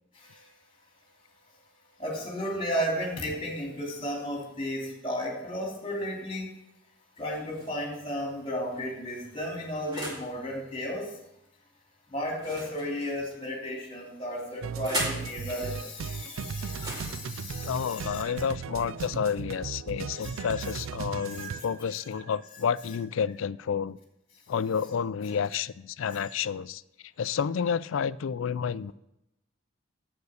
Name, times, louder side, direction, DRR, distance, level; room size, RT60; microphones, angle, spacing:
voice 1, 0.1-0.5 2.0-6.6 7.2-11.2 12.1-18.2 20.1-20.8 21.1-21.9 26.0-26.3, equal, 25° left, 0 dB, 2.8 m, -34 dB
sound 1, 7.2-8.0 8.7-10.3 12.3-13.5 14.3-15.3 16.7-18.6, right 1 dB, 20° right, 2.3 m, -39 dB
sound 2, 14.6-21.6, right 6 dB, 80° right, 0.4 m, -37 dB
voice 2, 17.6-24.0 24.5-26.8 27.2-28.9, left 7 dB, 75° left, 18 dB, 0.4 m, -30 dB
9.5 x 8.1 x 6.5 m, 0.87 s
head